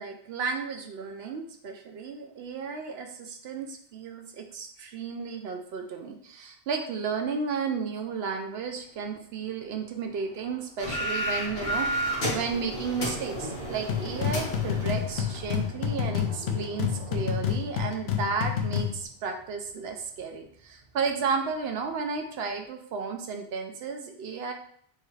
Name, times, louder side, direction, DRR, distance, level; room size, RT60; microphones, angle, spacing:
voice 1, 0.0-24.5, right 5 dB, 75° right, 4 dB, 0.8 m, -33 dB
sound 1, 8.8-22.7, right 3 dB, 60° right, 1.7 m, -46 dB
sound 2, 10.8-15.7, equal, 50° left, 1.5 m, -32 dB
sound 3, 13.9-19.0, left 9 dB, 80° left, 0.9 m, -29 dB
6.5 x 2.4 x 3.2 m, 0.62 s
omnidirectional pair, 1.0 m